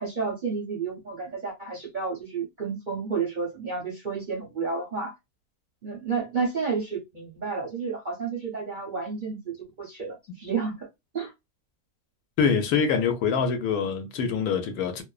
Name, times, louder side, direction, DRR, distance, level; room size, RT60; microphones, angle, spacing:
voice 1, 0.0-5.1 5.8-10.9 11.1-11.3, right 5 dB, 50° right, 0.6 m, -31 dB
voice 2, 12.4-15.0, left 6 dB, 80° left, 1.0 m, -24 dB
2.5 x 2.1 x 2.3 m
omnidirectional pair, 1.6 m